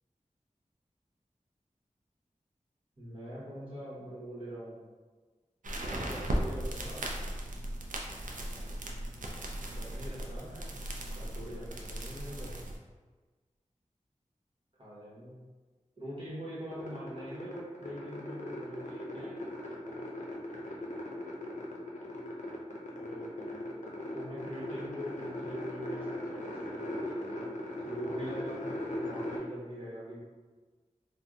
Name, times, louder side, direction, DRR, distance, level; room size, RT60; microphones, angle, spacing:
voice 1, 3.0-4.8 5.8-7.1 9.7-10.7 11.0-12.5 14.8-15.4 16.0-19.4 23.0-23.9 24.1-27.4 27.8-30.2, right 1 dB, 40° right, -8 dB, 1.2 m, -43 dB
sound 1, 5.6-12.8, right 1 dB, 80° right, 0.5 m, -37 dB
sound 2, 16.7-29.4, left 1 dB, 65° left, 0.6 m, -39 dB
2.7 x 2.2 x 3.6 m, 1.4 s
wide cardioid pair, 50°, 13 cm